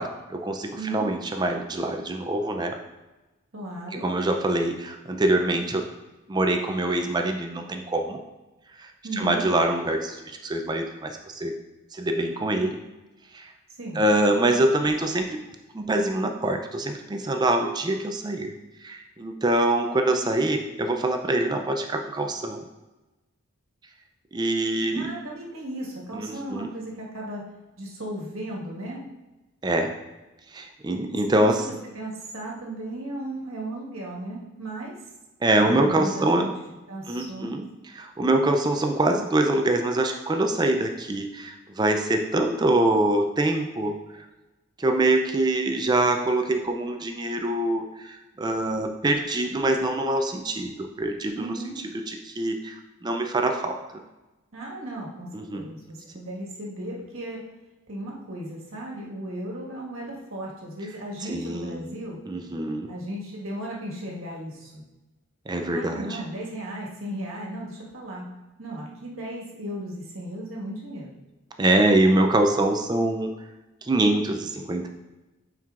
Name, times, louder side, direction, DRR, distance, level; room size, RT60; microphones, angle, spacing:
voice 1, 0.0-2.8 4.0-5.9 6.3-8.2 8.8-11.5 11.9-12.8 13.3-13.5 14.0-15.4 15.7-18.5 18.8-22.7 24.3-25.1 26.1-26.7 29.6-29.9 30.5-31.7 35.4-36.5 37.1-37.7 37.9-44.3 44.8-51.6 52.1-54.0 55.3-55.7 61.2-61.9 62.3-62.9 65.5-66.2 71.6-73.3 73.8-74.9, right 1 dB, 20° right, 5 dB, 0.4 m, -24 dB
voice 2, 0.8-1.1 3.5-4.1 9.0-9.4 13.8-14.0 24.9-27.4 27.8-29.0 31.2-35.0 35.6-36.5 36.9-37.6 51.3-51.8 54.5-57.4 57.9-62.2 62.9-64.8 65.7-68.3 68.6-71.1, right 1 dB, 70° right, -3 dB, 1.6 m, -35 dB
9.0 x 4.6 x 2.4 m, 1.1 s
head